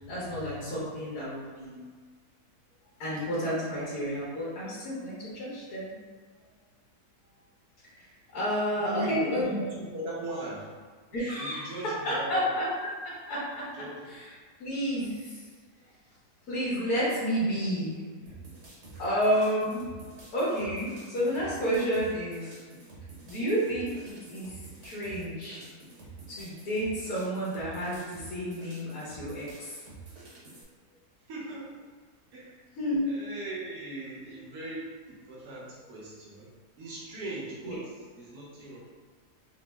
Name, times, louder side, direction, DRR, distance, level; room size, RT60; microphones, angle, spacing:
voice 1, 0.1-1.8 3.0-5.9 7.9-9.4 11.1-12.7 13.3-13.8 14.1-14.2 14.6-15.4 16.5-18.0 19.0-19.8 20.3-22.5 23.3-25.6 26.3-29.8 32.8-33.0 37.6-37.8, equal, 75° left, -8 dB, 1.4 m, -30 dB
voice 2, 8.8-10.7 11.4-12.6 13.7-14.1 18.2-18.3 18.9-19.0 23.2-23.3 31.3-31.8 32.3-32.5 33.1-36.5 36.8-38.8, right 1 dB, 80° right, -5 dB, 1.5 m, -39 dB
sound 1, 18.3-30.6, right 3 dB, 55° right, 1.1 m, -48 dB
4.0 x 2.0 x 3.4 m, 1.5 s
omnidirectional pair, 1.6 m